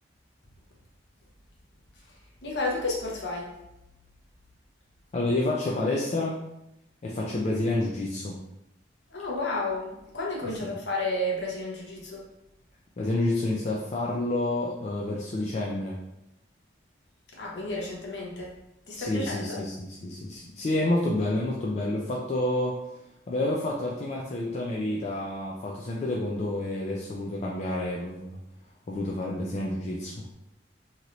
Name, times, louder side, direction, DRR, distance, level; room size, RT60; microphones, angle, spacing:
voice 1, 2.4-3.5 9.1-12.2 17.3-18.5 18.9-19.6, left 2 dB, 75° left, -3 dB, 0.9 m, -31 dB
voice 2, 5.1-6.4 7.0-8.4 13.0-16.0 19.0-22.9 23.3-28.4 28.9-30.2, left 1 dB, 40° left, -4 dB, 0.4 m, -29 dB
2.9 x 2.5 x 3.0 m, 0.87 s
head